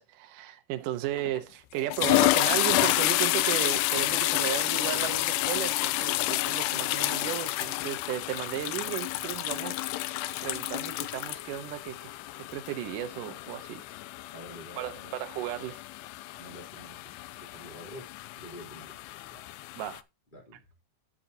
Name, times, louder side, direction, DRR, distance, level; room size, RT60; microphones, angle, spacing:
voice 1, 0.0-9.8 10.4-12.2 12.5-13.9 14.8-15.8 19.8-20.0, right 12 dB, 80° right, 1.9 m, -35 dB
sound 1, 1.2-1.4 1.8-20.0, left 17 dB, 80° left, 2.5 m, -30 dB
voice 2, 14.3-15.2 16.3-18.1 18.3-19.0 19.2-19.5 20.3-20.7, equal, 10° left, 2.7 m, -48 dB
12.5 x 6.7 x 2.8 m
omnidirectional pair, 5.1 m